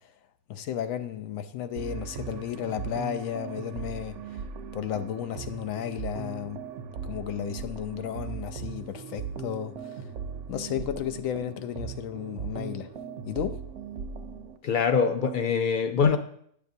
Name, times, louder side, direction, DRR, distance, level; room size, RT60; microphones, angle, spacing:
voice 1, 0.5-4.2 4.7-6.6 7.0-9.8 10.5-12.9 13.3-13.6, left 10 dB, 90° left, 1.0 m, -33 dB
sound 1, 1.8-14.6, right 6 dB, 70° right, 0.9 m, -38 dB
voice 2, 14.6-16.2, left 6 dB, 65° left, 0.5 m, -23 dB
10.0 x 6.7 x 2.7 m
omnidirectional pair, 1.4 m